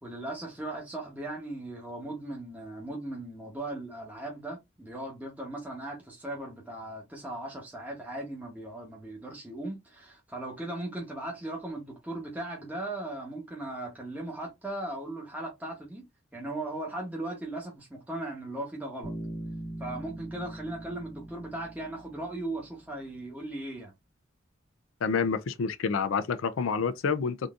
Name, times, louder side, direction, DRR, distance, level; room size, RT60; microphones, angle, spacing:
voice 1, 0.0-16.0 16.3-19.1 19.8-23.9, right 1 dB, 10° right, 1.0 m, -38 dB
Bass guitar, 19.0-22.8, right 1 dB, 50° right, 1.9 m, -41 dB
voice 2, 25.0-27.5, left 5 dB, 80° left, 0.4 m, -28 dB
3.7 x 2.7 x 2.4 m
head